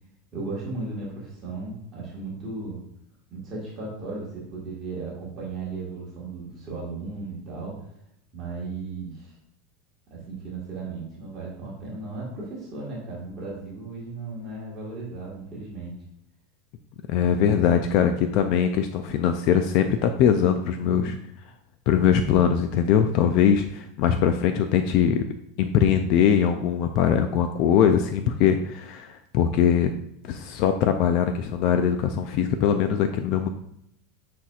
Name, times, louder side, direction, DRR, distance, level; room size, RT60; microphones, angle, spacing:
voice 1, 0.3-2.8 3.3-7.8 8.3-9.3 10.1-16.0 20.8-21.2, right 3 dB, 25° right, -5 dB, 1.7 m, -35 dB
voice 2, 17.1-21.1 21.9-25.2 25.6-29.9 30.2-33.5, left 8 dB, 40° left, 7 dB, 0.3 m, -21 dB
10.0 x 4.3 x 2.4 m, 0.77 s
supercardioid pair, 175°, 0 cm